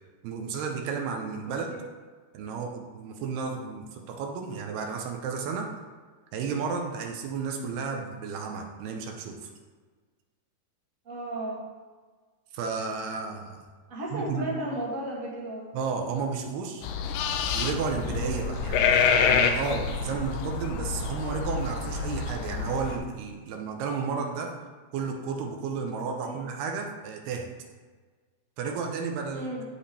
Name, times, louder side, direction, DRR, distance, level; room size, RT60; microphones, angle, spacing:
voice 1, 0.2-1.7 2.3-5.7 6.3-9.5 12.5-13.6 14.1-14.5 15.7-16.9 17.5-24.5 24.9-27.5 28.6-29.5, right 5 dB, 80° right, 2 dB, 2.9 m, -32 dB
voice 2, 11.0-11.6 13.9-15.7 26.2-26.5 29.3-29.6, right 1 dB, 25° right, -5 dB, 1.9 m, -34 dB
sound 1, 16.8-23.0, left 6 dB, 80° left, 2.0 m, -27 dB
15.5 x 5.3 x 3.4 m, 1.4 s
omnidirectional pair, 4.6 m